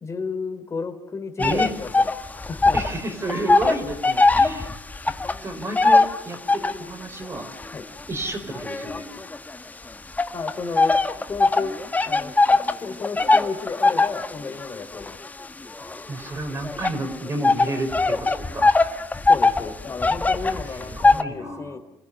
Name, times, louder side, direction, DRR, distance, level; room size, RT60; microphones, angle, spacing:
voice 1, 0.0-2.8 7.7-7.8 10.3-10.9 11.3-11.8 12.0-12.3 12.8-15.2 19.2-21.8, left 4 dB, 35° left, 8 dB, 3.3 m, -32 dB
sound 1, 1.4-3.0 3.2-6.9 7.5-9.6 10.2-21.2, left 3 dB, 20° left, 1.4 m, -21 dB
voice 2, 1.4-1.7 2.7-4.7 5.4-7.5 8.1-9.1 16.1-18.7 20.5-21.8, right 1 dB, 35° right, 2 dB, 4.7 m, -31 dB
28.5 x 16.0 x 9.9 m, 0.90 s
supercardioid pair, 80°, 8 cm